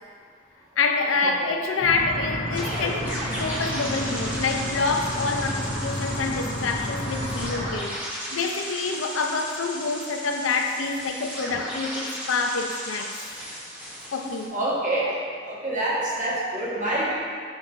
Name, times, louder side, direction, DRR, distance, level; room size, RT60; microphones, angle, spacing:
voice 1, 0.8-3.1 3.4-13.1 14.1-14.6, left 4 dB, 85° left, 4 dB, 0.5 m, -27 dB
sound 1, 1.8-7.8, equal, 55° left, 1.0 m, -31 dB
sound 2, 2.5-14.5, equal, 10° right, 1.3 m, -35 dB
voice 2, 14.5-17.1, right 1 dB, 40° right, -5 dB, 1.4 m, -26 dB
5.9 x 3.8 x 5.4 m, 2.1 s
head